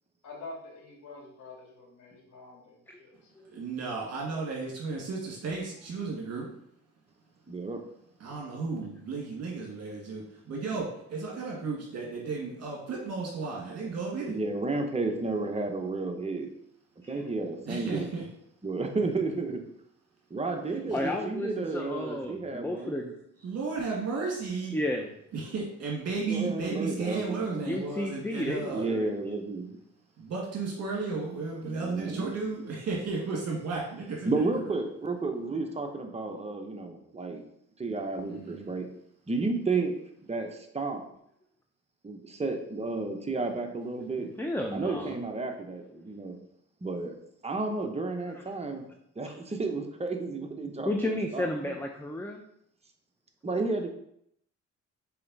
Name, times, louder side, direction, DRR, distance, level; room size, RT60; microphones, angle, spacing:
voice 1, 0.2-3.3, left 3 dB, 75° left, -2 dB, 2.3 m, -46 dB
voice 2, 3.5-6.5 8.2-14.4 17.7-18.2 20.9-21.1 23.4-24.8 25.3-28.9 30.2-34.5 38.3-38.8, right 4 dB, 55° right, -3 dB, 1.9 m, -34 dB
voice 3, 7.5-7.8 14.3-16.5 17.1-18.1 18.6-19.6 20.3-22.9 26.3-27.8 28.7-29.8 31.6-32.3 34.2-37.4 37.8-38.9 39.3-39.9 40.3-41.0 42.0-44.3 44.7-46.4 46.8-47.1 47.4-48.8 49.2-51.8 53.4-53.9, right 3 dB, 20° right, 3 dB, 1.0 m, -32 dB
voice 4, 20.9-23.1 24.7-25.1 27.6-29.1 44.4-45.2 49.2-49.3 50.8-52.4, left 1 dB, 5° left, 3 dB, 0.6 m, -32 dB
5.6 x 4.3 x 4.1 m, 0.73 s
cardioid pair, 90°, 30 cm